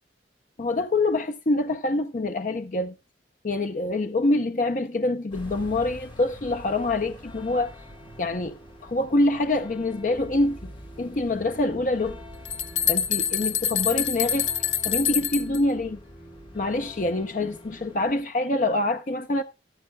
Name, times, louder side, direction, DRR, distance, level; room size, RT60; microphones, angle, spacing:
voice 1, 0.6-2.9 3.4-7.7 8.2-8.5 8.8-10.7 11.0-12.2 12.9-14.5 14.8-16.0 16.5-19.4, left 2 dB, 45° left, 0.6 m, -25 dB
sound 1, 5.3-18.2, left 1 dB, 25° left, 2.2 m, -44 dB
sound 2, 12.1-15.6, left 10 dB, 85° left, 1.0 m, -26 dB
14.0 x 12.5 x 2.2 m
head